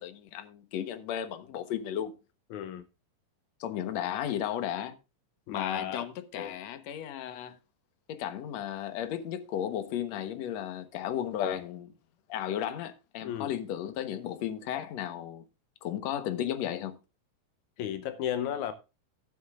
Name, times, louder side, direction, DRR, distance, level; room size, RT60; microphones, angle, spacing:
voice 1, 0.0-2.2 3.6-5.0 5.5-7.6 8.1-11.9 12.3-15.4 15.8-16.9, left 10 dB, 70° left, 1.7 m, -34 dB
voice 2, 2.5-2.8 5.5-6.1 6.3-6.5 13.2-13.5 17.8-18.7, left 9 dB, 90° left, 1.6 m, -34 dB
16.0 x 8.3 x 2.4 m
omnidirectional pair, 4.6 m